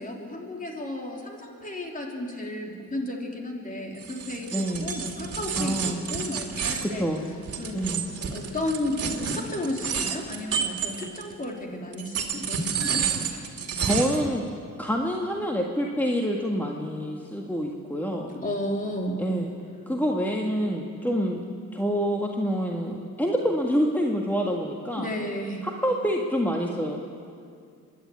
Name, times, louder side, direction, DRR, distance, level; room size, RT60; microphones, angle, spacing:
voice 1, 0.0-7.0 7.6-8.0 8.3-13.0 18.3-19.2 25.0-25.7, left 1 dB, 25° left, 1 dB, 3.6 m, -33 dB
sound 1, 4.0-11.4 11.9-14.3, right 6 dB, 50° right, 2.4 m, -30 dB
voice 2, 4.5-4.9 5.6-6.0 6.8-7.2 7.7-8.0 13.8-14.5 14.8-18.3 19.2-19.5 19.9-21.4 21.7-25.1 25.6-27.0, equal, 5° left, 0 dB, 1.7 m, -27 dB
25.0 x 11.5 x 9.5 m, 2.4 s
cardioid pair, 90°, 30 cm